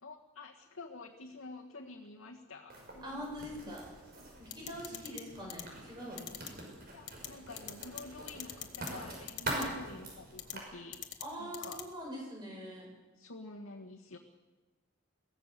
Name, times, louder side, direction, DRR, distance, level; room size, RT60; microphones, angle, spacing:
voice 1, 0.0-3.2 3.5-3.8 4.7-5.6 6.9-11.1 11.4-11.8 13.1-14.2, left 3 dB, 80° left, 0 dB, 1.6 m, -49 dB
Writing, 2.7-10.6, right 2 dB, 45° right, 6.2 m, -44 dB
voice 2, 3.0-3.9 4.4-6.3 9.5-9.7 11.2-12.9, equal, 20° right, -2 dB, 7.3 m, -43 dB
sound 1, 4.5-5.2 5.5-5.6 6.2-6.5 7.1-7.3 7.6-8.0 8.3-8.9 9.3-9.7 10.4-10.5 10.9-11.2 11.5-11.8, left 12 dB, 55° left, 1.6 m, -41 dB
23.0 x 17.0 x 6.7 m, 1.2 s
head